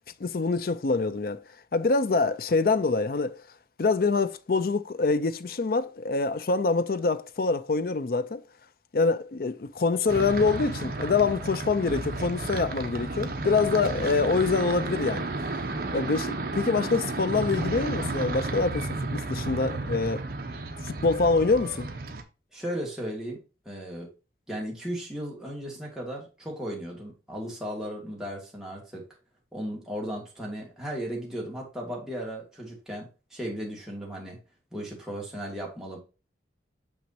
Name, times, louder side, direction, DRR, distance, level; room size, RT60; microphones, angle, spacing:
voice 1, 0.2-1.4 1.7-3.4 3.8-8.4 8.9-15.3 15.9-20.2 20.8-21.9, left 4 dB, 55° left, 0.5 m, -25 dB
sound 1, 10.1-22.2, right 2 dB, 55° right, 0.9 m, -32 dB
voice 2, 22.5-23.4 23.7-24.1 24.5-29.0 29.5-34.4 34.7-36.0, equal, 5° right, 2.1 m, -36 dB
6.2 x 6.1 x 2.8 m
head